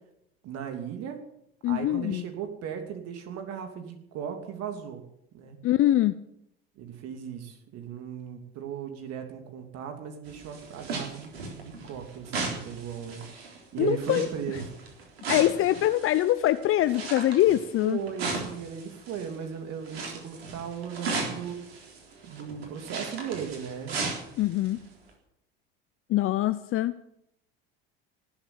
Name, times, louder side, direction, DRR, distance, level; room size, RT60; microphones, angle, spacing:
voice 1, 0.4-1.3 1.7-5.0 5.3-5.6 6.8-11.3 11.6-13.2 13.5-14.7 17.8-21.8 22.2-24.0, right 8 dB, 55° right, 6 dB, 2.8 m, -37 dB
voice 2, 1.6-2.2 5.6-6.2 13.8-14.3 15.3-18.0 24.4-24.8 26.1-27.0, left 13 dB, 45° left, 12 dB, 0.8 m, -23 dB
sound 1, 10.2-19.4 19.8-24.8 25.1-25.2, right 3 dB, 90° right, 3.9 m, -36 dB
18.5 x 8.1 x 8.9 m, 0.77 s
hypercardioid pair, 75°, 30 cm